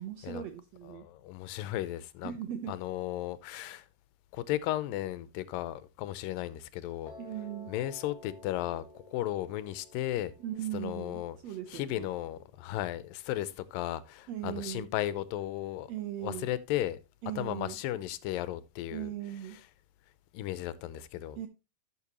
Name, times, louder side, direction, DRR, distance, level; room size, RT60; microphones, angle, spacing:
voice 1, 0.0-1.1 2.2-2.8 7.2-7.7 10.4-12.1 14.3-14.9 15.9-16.5 17.2-17.8 18.9-19.6 21.4-21.5, right 11 dB, 75° right, 1.5 m, -38 dB
voice 2, 0.8-2.3 2.7-3.9 4.3-7.1 7.7-10.3 10.7-11.4 11.7-15.9 16.2-17.0 17.4-19.1 20.3-21.4, left 14 dB, 85° left, 2.4 m, -35 dB
Piano, 7.1-13.2, left 2 dB, 20° left, 3.8 m, -54 dB
12.0 x 6.6 x 2.9 m
omnidirectional pair, 3.9 m